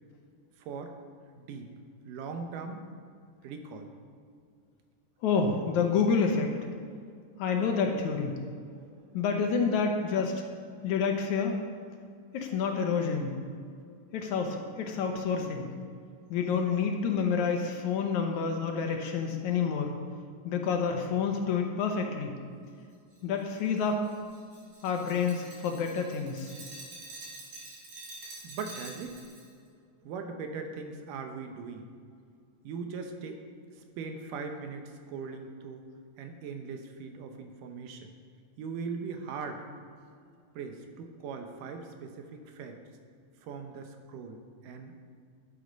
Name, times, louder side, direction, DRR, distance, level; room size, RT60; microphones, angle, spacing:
voice 1, 0.6-0.9 1.4-1.7 2.1-2.9 3.4-3.9 8.8-8.9 28.4-29.2 30.0-31.8 32.6-33.4 33.8-35.9 36.2-38.1 38.6-39.6 40.6-42.8 43.4-45.1, right 5 dB, 80° right, 5 dB, 2.5 m, -40 dB
voice 2, 5.2-6.6 7.4-8.4 9.1-10.4 10.8-11.6 12.3-13.4 14.1-15.7 16.3-19.9 20.5-22.4 23.2-24.0 24.8-26.5, left 5 dB, 70° left, 3 dB, 2.1 m, -28 dB
Glass, 23.1-29.5, right 2 dB, 55° right, 4.2 m, -47 dB
11.5 x 8.5 x 5.2 m, 2.3 s
omnidirectional pair, 3.9 m